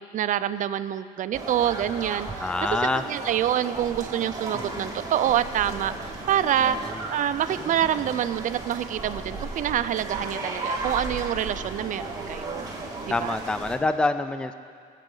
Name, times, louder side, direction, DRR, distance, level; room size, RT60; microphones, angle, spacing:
voice 1, 0.0-2.5 2.8-12.7 13.2-13.4, right 10 dB, 50° right, 13 dB, 0.5 m, -26 dB
sound 1, 1.3-13.8, right 2 dB, 20° right, 2.0 m, -35 dB
voice 2, 2.4-3.0 4.5-5.0 6.6-6.9 13.1-14.5, left 2 dB, 5° left, 11 dB, 0.4 m, -27 dB
19.0 x 8.3 x 3.9 m, 2.2 s
cardioid pair, 110°, 17 cm